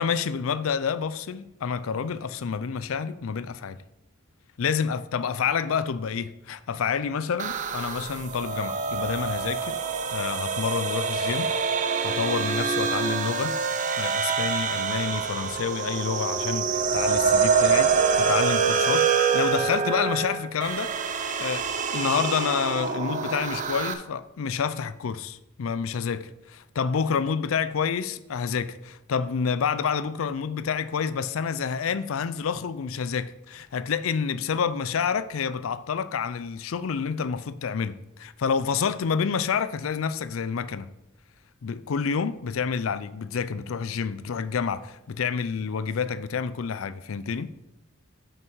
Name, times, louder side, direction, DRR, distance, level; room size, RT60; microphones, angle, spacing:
voice 1, 0.0-3.8 4.6-9.8 10.1-11.5 12.0-13.6 14.0-20.9 21.4-40.9 41.6-47.5, left 6 dB, 90° left, 0.5 m, -28 dB
sound 1, 7.4-23.9, right 5 dB, 40° right, 0.6 m, -26 dB
7.9 x 5.9 x 4.6 m
head